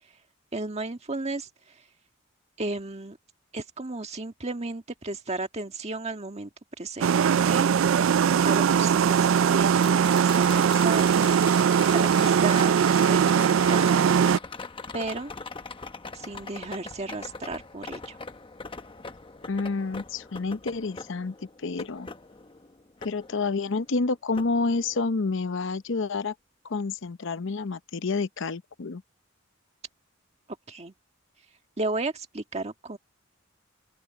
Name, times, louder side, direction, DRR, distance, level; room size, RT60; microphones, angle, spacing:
voice 1, 0.5-1.8 2.6-3.2 3.5-6.5 6.8-7.7 8.4-11.3 11.9-14.2 14.9-15.3 16.1-18.2 30.7-30.9 31.8-33.0, right 2 dB, 30° right, 1.7 m, -34 dB
sound 1, 7.0-14.4, right 7 dB, 70° right, 0.4 m, -21 dB
sound 2, 9.8-23.9 24.4-25.4 27.6-27.7, left 4 dB, 25° left, 1.0 m, -41 dB
voice 2, 19.5-22.1 23.0-26.3 26.6-29.0, left 4 dB, 65° left, 0.7 m, -29 dB
open air
head